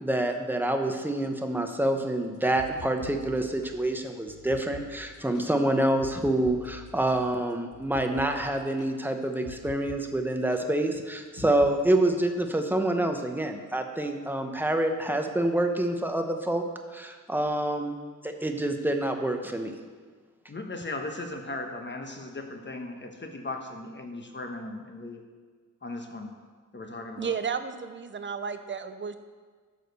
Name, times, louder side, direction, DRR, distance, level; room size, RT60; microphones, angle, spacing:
voice 1, 0.0-16.6 16.9-18.0 18.2-19.7, right 1 dB, 5° right, 4 dB, 0.8 m, -27 dB
sound 1, 2.3-10.0 10.3-10.6 11.4-11.7, left 7 dB, 70° left, 0.9 m, -47 dB
voice 2, 20.5-25.2 25.8-26.4 26.7-27.4, left 2 dB, 35° left, 4 dB, 1.2 m, -37 dB
voice 3, 27.2-29.2, right 6 dB, 35° right, 10 dB, 0.6 m, -33 dB
11.0 x 4.9 x 6.8 m, 1.5 s
wide cardioid pair, 115°, 32 cm